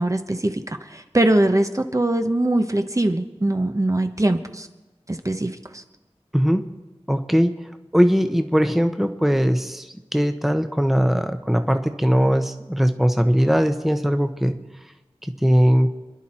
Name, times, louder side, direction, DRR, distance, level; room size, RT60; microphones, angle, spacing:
voice 1, 0.0-4.7 5.1-5.8, right 1 dB, 30° right, 6 dB, 1.0 m, -22 dB
voice 2, 6.3-6.6 7.1-14.6 15.2-15.9, equal, ahead, 7 dB, 1.0 m, -20 dB
27.5 x 10.5 x 4.4 m, 1.1 s
wide cardioid pair, 50°, 11 cm